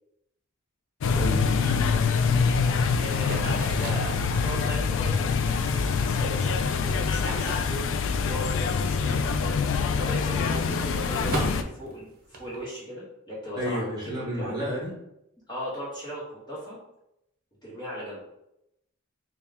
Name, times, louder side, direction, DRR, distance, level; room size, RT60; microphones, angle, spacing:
sound 1, 1.0-11.6, left 5 dB, 60° left, 0.3 m, -25 dB
voice 1, 1.1-1.8 13.6-14.9, equal, 20° right, -7 dB, 1.0 m, -31 dB
voice 2, 3.0-14.6 15.5-16.8 17.6-18.2, equal, 20° left, -7 dB, 1.3 m, -38 dB
sound 2, 3.0-8.4 8.7-12.6, right 1 dB, 40° right, 0.7 m, -39 dB
4.1 x 2.3 x 3.5 m, 0.84 s
head